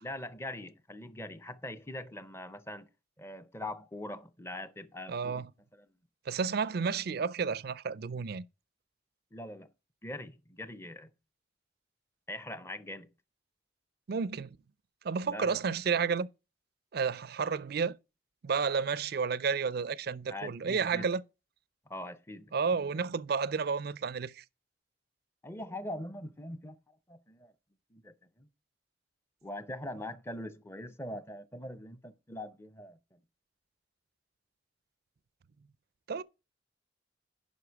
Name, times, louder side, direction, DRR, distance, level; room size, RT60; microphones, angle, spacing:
voice 1, 0.0-2.9 3.2-5.4 5.8-5.9 9.3-9.7 10.0-11.1 12.3-13.1 15.3-15.6 20.3-21.0 21.9-22.5 25.4-26.8 27.1-27.5 27.9-28.5 29.4-33.2, left 1 dB, 15° left, 0.7 m, -42 dB
voice 2, 5.1-5.5 6.3-8.4 14.1-14.6 15.0-16.3 16.9-18.0 18.4-21.2 22.5-24.4 36.1-36.2, right 5 dB, 60° right, 0.4 m, -31 dB
9.7 x 5.6 x 4.6 m
head